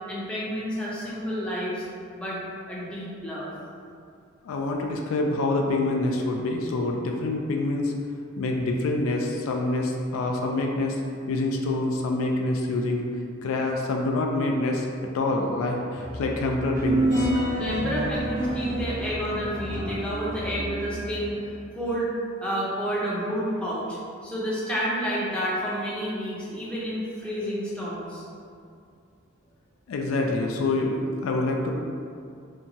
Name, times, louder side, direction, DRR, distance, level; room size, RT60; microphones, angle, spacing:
voice 1, 0.1-1.8 2.1-2.4 2.7-3.5 17.6-22.1 22.4-28.2, equal, 5° left, -8 dB, 0.5 m, -30 dB
voice 2, 4.4-7.9 8.4-11.0 11.3-13.0 13.4-17.3 29.9-31.7, left 2 dB, 75° left, 2 dB, 0.3 m, -26 dB
Musical instrument, 15.9-21.4, equal, 50° left, 0.8 m, -38 dB
sound 1, 16.7-21.3, right 1 dB, 40° right, 0.7 m, -28 dB
2.8 x 2.2 x 2.6 m, 2.3 s
head